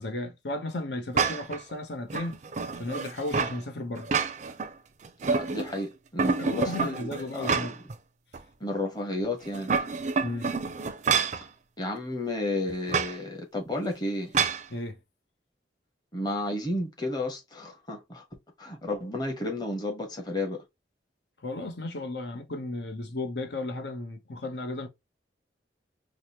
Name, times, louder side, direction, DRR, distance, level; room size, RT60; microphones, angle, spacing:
voice 1, 0.0-2.4 2.8-4.1 6.4-7.8 10.2-10.5 14.7-15.0 21.4-24.9, left 2 dB, 70° left, 0.7 m, -34 dB
sound 1, 1.1-1.6 2.1-3.6 4.0-4.7 5.0-5.8 6.2-7.9 8.3-8.4 9.4-11.4 12.9-13.1 14.3-14.6, right 5 dB, 40° right, 0.4 m, -28 dB
voice 2, 5.2-7.7 8.6-9.8 11.8-14.3 16.1-18.2 18.6-20.6, left 1 dB, 25° left, 1.0 m, -32 dB
4.7 x 2.1 x 2.8 m
head